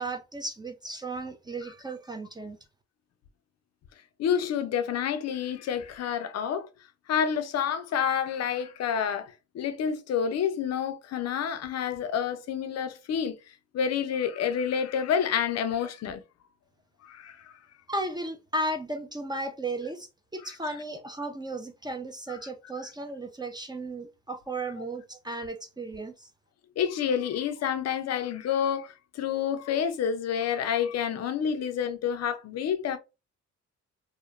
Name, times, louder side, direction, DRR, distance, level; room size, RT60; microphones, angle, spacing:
voice 1, 0.0-2.6 17.9-26.3, right 2 dB, 15° right, 0.4 m, -35 dB
voice 2, 4.2-6.7 7.1-13.4 13.7-16.2 17.0-17.5 26.8-33.0, left 8 dB, 60° left, 0.5 m, -29 dB
2.8 x 2.1 x 2.3 m
cardioid pair, 90°, 30 cm